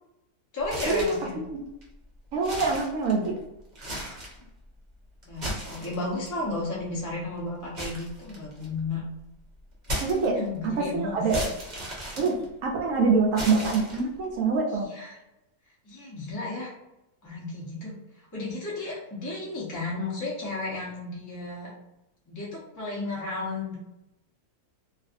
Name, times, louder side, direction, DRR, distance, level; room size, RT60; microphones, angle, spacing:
voice 1, 0.5-1.4 5.2-9.0 10.2-11.2 14.9-15.2 15.8-16.7 17.2-17.9 18.3-21.7 22.3-23.7, left 2 dB, 15° left, -6 dB, 0.7 m, -33 dB
sound 1, 0.6-1.3 1.8-1.9 2.4-3.4 3.7-4.4 5.2-6.3 7.8-8.8 9.8-10.7 11.3-12.9 13.3-14.3, equal, 35° right, 0.9 m, -35 dB
voice 2, 2.3-3.4 10.0-10.4 10.6-11.4 12.2-14.9, right 4 dB, 65° right, 0 dB, 0.9 m, -25 dB
2.6 x 2.5 x 2.5 m, 0.91 s
omnidirectional pair, 1.6 m